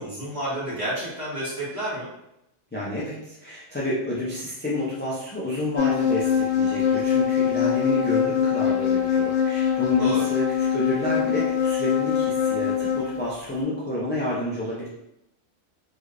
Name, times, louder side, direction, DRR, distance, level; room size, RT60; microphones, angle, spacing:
voice 1, 0.0-2.1 10.0-10.3, right 1 dB, 30° right, -10 dB, 1.6 m, -30 dB
voice 2, 2.7-14.9, left 1 dB, 15° left, -7 dB, 0.4 m, -29 dB
sound 1, 5.8-13.2, left 8 dB, 75° left, 0.9 m, -23 dB
3.1 x 3.0 x 2.5 m, 0.84 s
omnidirectional pair, 1.2 m